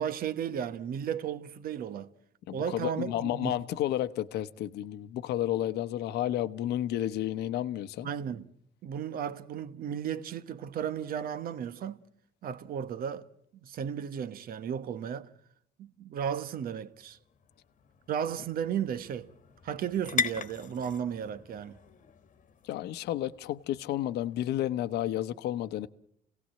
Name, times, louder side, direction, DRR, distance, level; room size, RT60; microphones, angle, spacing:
voice 1, 0.0-2.1 2.5-3.6 8.0-8.4 8.8-12.0 12.4-13.3 13.6-15.3 15.8-17.2 18.1-19.3 19.6-21.8, right 8 dB, 60° right, 1.1 m, -34 dB
voice 2, 2.5-8.1 22.6-25.9, left 12 dB, 80° left, 1.0 m, -31 dB
sound 1, 16.6-24.4, left 7 dB, 50° left, 1.3 m, -40 dB
28.5 x 17.5 x 7.6 m
cardioid pair, 110°, 17 cm